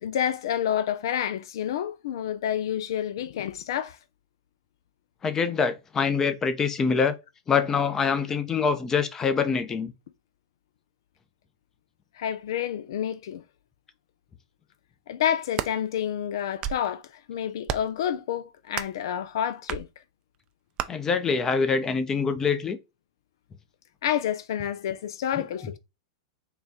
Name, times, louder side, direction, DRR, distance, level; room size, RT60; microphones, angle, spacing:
voice 1, 0.0-4.0 12.2-13.4 15.1-17.0 17.3-19.9 24.0-25.8, left 10 dB, 70° left, 0.4 m, -29 dB
voice 2, 5.2-7.2 7.5-9.9 20.9-22.8, left 5 dB, 20° left, 0.6 m, -25 dB
sound 1, 15.3-15.7 16.4-16.9 17.6-18.0 18.7-19.0 19.7-19.9 20.8-20.9, right 11 dB, 35° right, 0.4 m, -32 dB
3.9 x 2.3 x 4.0 m
hypercardioid pair, 120°, 2 cm